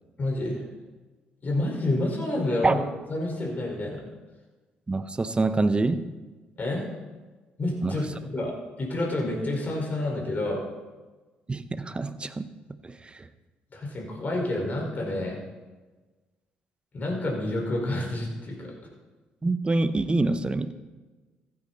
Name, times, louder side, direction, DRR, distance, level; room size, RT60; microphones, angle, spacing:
voice 1, 0.2-0.6 1.4-2.8 3.1-4.0 6.6-6.9 7.6-8.5 8.8-10.6 13.7-15.4 16.9-18.7, left 1 dB, 45° left, -1 dB, 4.9 m, -29 dB
voice 2, 4.9-6.0 7.8-8.0 11.5-12.5 12.8-13.3 19.4-20.7, right 3 dB, 25° right, 11 dB, 0.8 m, -26 dB
15.0 x 9.5 x 4.2 m, 1.3 s
supercardioid pair, 60°, 4 cm